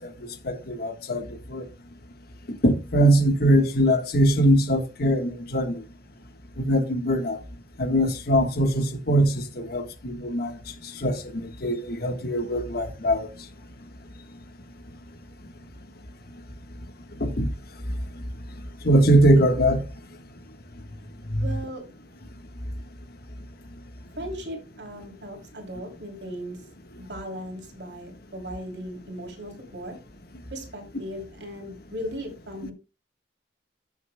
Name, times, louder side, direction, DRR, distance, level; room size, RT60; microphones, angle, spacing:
voice 1, 0.4-1.7 2.6-5.8 6.6-7.4 7.8-10.6 11.0-13.3 17.2-17.5 18.8-19.8 21.3-21.6, right 1 dB, 60° left, 1.4 m, -22 dB
voice 2, 21.4-21.8 24.2-26.6 27.0-29.9 30.5-32.7, equal, 80° right, 3.1 m, -37 dB
15.5 x 6.8 x 2.2 m
head